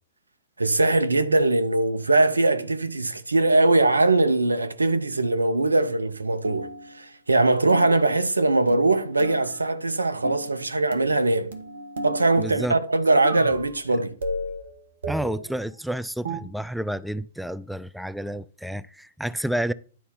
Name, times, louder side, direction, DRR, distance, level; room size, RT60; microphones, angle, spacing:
voice 1, 0.6-6.7 6.9-11.5 12.0-14.1, right 2 dB, 90° right, 0.7 m, -21 dB
sound 1, 6.4-7.0 7.7-8.3 8.7-9.7 10.2-10.7 10.9-12.6 13.2-13.8 14.2-15.6 16.3-16.4, right 1 dB, 75° right, 1.5 m, -34 dB
voice 2, 12.4-12.8 15.1-19.7, right 1 dB, ahead, 0.3 m, -30 dB
10.0 x 4.2 x 5.4 m
figure-of-eight pair, 110°, 0 cm